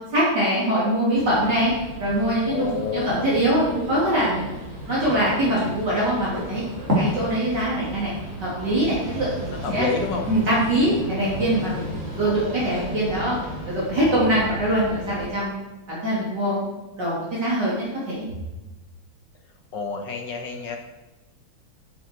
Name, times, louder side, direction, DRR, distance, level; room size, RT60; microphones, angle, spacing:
voice 1, 0.1-1.7 2.0-4.6 4.8-6.6 6.9-8.1 8.4-9.9 10.3-11.9 12.2-13.4 13.7-15.6 15.9-16.7 17.0-18.3, right 1 dB, 55° right, -8 dB, 3.9 m, -23 dB
sound 1, 1.1-15.3, equal, 35° right, 4.5 m, -33 dB
voice 2, 2.5-3.4 9.5-10.3 19.7-20.8, left 5 dB, 60° left, 3 dB, 2.0 m, -29 dB
12.5 x 8.4 x 4.8 m, 1.1 s
omnidirectional pair, 2.3 m